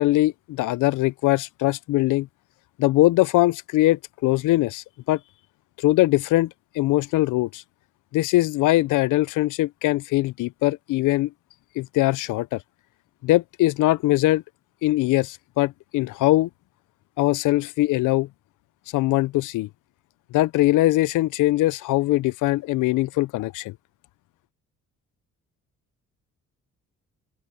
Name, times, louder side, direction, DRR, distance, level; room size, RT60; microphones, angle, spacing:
voice 1, 0.0-2.3 2.8-5.2 5.8-7.6 8.1-11.3 11.8-12.6 13.2-14.4 14.8-16.5 17.2-18.3 18.9-19.7 20.3-23.7, left 17 dB, 85° left, 0.6 m, -21 dB
cardioid pair, 90°, 30 cm